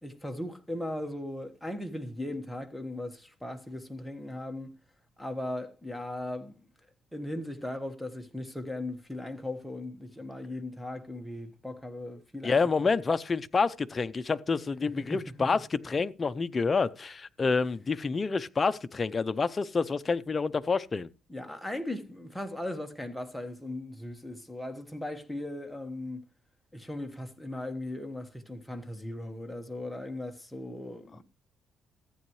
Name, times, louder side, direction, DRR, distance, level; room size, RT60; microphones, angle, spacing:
voice 1, 0.0-4.8 5.2-6.6 7.1-12.6 14.8-15.5 21.3-26.2 26.7-31.2, left 1 dB, ahead, 1.4 m, -38 dB
voice 2, 12.4-21.1, left 4 dB, 30° left, 0.6 m, -28 dB
14.5 x 8.5 x 3.1 m
cardioid pair, 110°, 0 cm